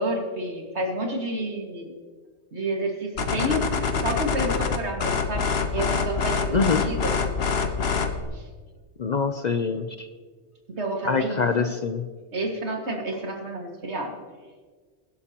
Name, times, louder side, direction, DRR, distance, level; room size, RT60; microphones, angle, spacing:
voice 1, 0.0-1.9 2.5-3.7 4.0-7.2 8.3-8.4 10.7-11.7 12.3-14.1, right 1 dB, 70° right, 1 dB, 2.3 m, -30 dB
sound 1, 3.2-8.2, left 5 dB, 65° left, 1.2 m, -25 dB
voice 2, 6.5-6.8 9.0-10.1 11.1-12.0, left 5 dB, 50° left, 8 dB, 0.6 m, -24 dB
23.0 x 11.5 x 3.0 m, 1.5 s
omnidirectional pair, 1.2 m